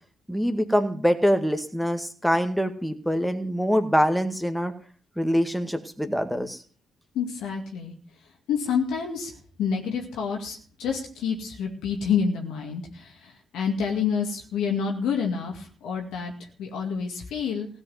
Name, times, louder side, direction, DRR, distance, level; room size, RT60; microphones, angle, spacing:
voice 1, 0.3-4.7 5.2-6.6, equal, ahead, 7 dB, 1.8 m, -24 dB
voice 2, 7.1-7.9 8.5-9.3 9.6-16.3 16.6-17.7, left 6 dB, 70° left, 1 dB, 2.2 m, -28 dB
16.5 x 5.5 x 9.4 m, 0.43 s
hypercardioid pair, 45°, 0 cm